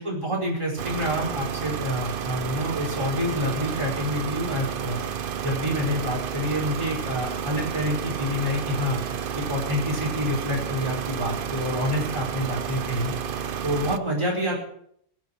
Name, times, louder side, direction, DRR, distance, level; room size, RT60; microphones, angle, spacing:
voice 1, 0.0-5.0 5.4-9.0 9.3-13.1 13.6-14.6, equal, 15° right, -3 dB, 5.0 m, -27 dB
sound 1, 0.8-14.0, right 8 dB, 75° right, 0.5 m, -31 dB
21.0 x 8.1 x 6.0 m, 0.66 s
omnidirectional pair, 1.8 m